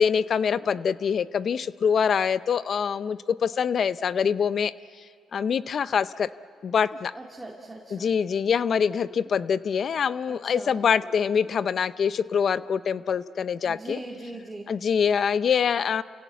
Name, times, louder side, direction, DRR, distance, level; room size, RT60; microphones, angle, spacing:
voice 1, 0.0-4.7 5.3-6.3 6.6-7.1 7.9-14.0 14.7-16.0, left 7 dB, 55° left, 16 dB, 0.6 m, -24 dB
voice 2, 7.1-8.1 10.3-10.8 13.6-14.7, right 2 dB, 15° right, -1 dB, 2.3 m, -40 dB
29.5 x 16.5 x 8.4 m, 2.1 s
cardioid pair, 90°, 0 cm